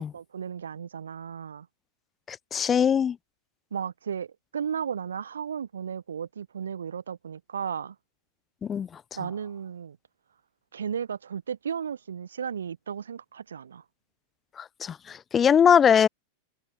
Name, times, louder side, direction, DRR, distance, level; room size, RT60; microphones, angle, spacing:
voice 1, 0.0-1.7 3.7-8.0 9.2-10.0 10.7-13.8, right 7 dB, 70° right, 6.4 m, -34 dB
voice 2, 2.3-3.2 8.6-9.0 14.6-16.1, left 8 dB, 20° left, 5.6 m, -21 dB
open air
figure-of-eight pair, 90°, 0 cm